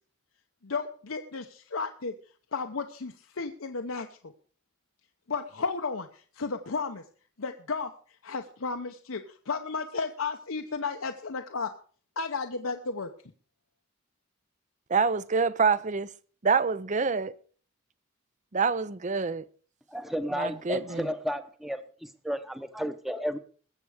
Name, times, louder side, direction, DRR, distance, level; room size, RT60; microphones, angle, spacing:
voice 1, 0.6-2.1 2.5-4.1 5.3-7.0 7.4-7.9 8.2-11.7 12.2-13.1, left 4 dB, 80° left, 0.9 m, -33 dB
voice 2, 14.9-16.1 16.4-17.4 18.5-19.5 20.3-21.1, right 5 dB, 35° right, 0.6 m, -26 dB
voice 3, 19.9-21.8 22.2-23.4, equal, ahead, 0.9 m, -32 dB
20.5 x 7.6 x 5.0 m
head